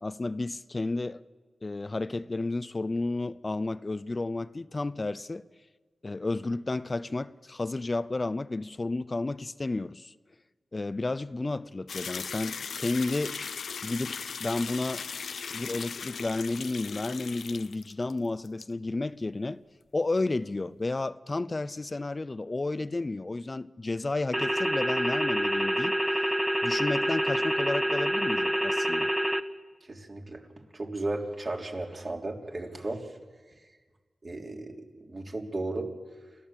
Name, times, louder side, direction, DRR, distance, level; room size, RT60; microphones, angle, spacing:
voice 1, 0.0-1.2 1.6-5.4 6.0-10.1 10.7-13.4 13.8-15.1 15.5-19.6 19.9-26.0 26.6-29.1, left 2 dB, 40° left, 0.6 m, -32 dB
sound 1, 11.9-18.2 18.5-18.6, left 6 dB, 80° left, 0.7 m, -38 dB
sound 2, 24.3-29.4, equal, 10° right, 1.3 m, -27 dB
voice 2, 29.9-30.4 30.7-33.1 34.2-35.9, right 2 dB, 50° right, 3.5 m, -35 dB
29.0 x 13.0 x 7.4 m
cardioid pair, 40°, 0 cm